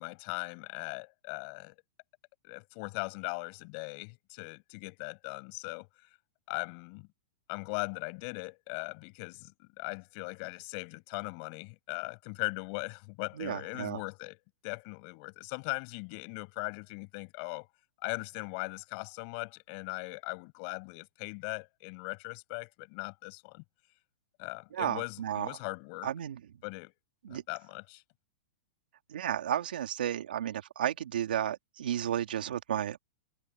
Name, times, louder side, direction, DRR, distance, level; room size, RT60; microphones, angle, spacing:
voice 1, 0.0-1.7 2.4-6.1 6.5-7.1 7.5-17.7 18.0-23.6 24.4-26.1 26.6-26.9 27.3-28.0, left 34 dB, 30° left, 6.0 m, -39 dB
voice 2, 13.4-14.0 24.7-25.6 26.0-26.4 27.2-27.4 29.1-33.0, right 10 dB, 75° right, 2.8 m, -33 dB
supercardioid pair, 175°, 5 cm